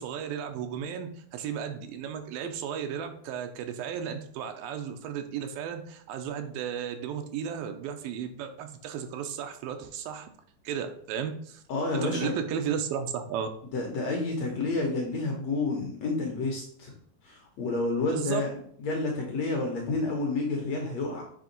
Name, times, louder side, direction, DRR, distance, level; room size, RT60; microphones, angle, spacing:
voice 1, 0.0-10.3 10.6-11.6 12.0-13.5 18.1-18.4, right 8 dB, 85° right, 6 dB, 2.4 m, -34 dB
voice 2, 11.7-12.4 13.7-16.9 17.2-18.5 18.8-21.2, left 3 dB, 65° left, 0 dB, 1.7 m, -29 dB
7.6 x 3.4 x 5.2 m, 0.62 s
omnidirectional pair, 4.1 m